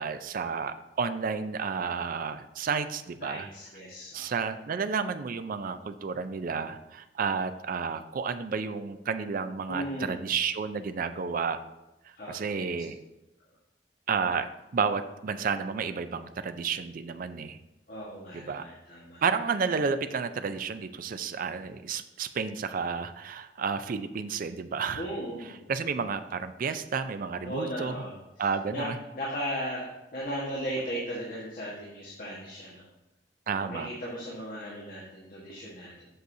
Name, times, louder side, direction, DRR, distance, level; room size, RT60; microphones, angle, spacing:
voice 1, 0.0-3.5 4.1-11.6 12.3-13.0 14.1-17.6 18.3-18.6 19.2-25.1 25.7-27.9 28.4-29.0 33.5-33.9, right 5 dB, 50° right, 11 dB, 0.4 m, -31 dB
voice 2, 3.2-4.4 9.7-10.2 12.2-12.7 17.9-19.2 24.9-25.7 27.4-28.9 29.1-29.9 30.1-32.8 33.6-36.1, equal, 55° left, -5 dB, 1.4 m, -37 dB
7.8 x 6.3 x 2.7 m, 0.97 s
head